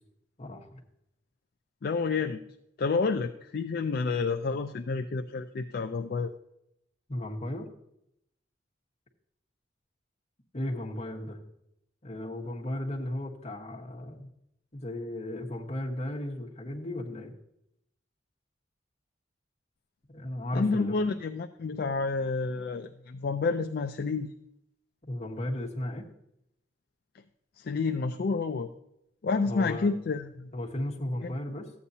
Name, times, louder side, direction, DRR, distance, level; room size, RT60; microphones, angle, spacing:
voice 1, 0.4-0.7 7.1-7.7 10.5-11.4 12.0-14.3 14.7-17.3 20.1-21.0 25.0-26.1 29.4-29.9 30.5-31.7, left 1 dB, 35° left, -1 dB, 1.3 m, -35 dB
voice 2, 1.8-2.4 2.8-6.3 20.5-24.3 27.6-28.7 29.2-30.5 31.2-31.3, left 4 dB, 55° left, 6 dB, 0.4 m, -29 dB
14.0 x 8.5 x 2.8 m, 0.80 s
head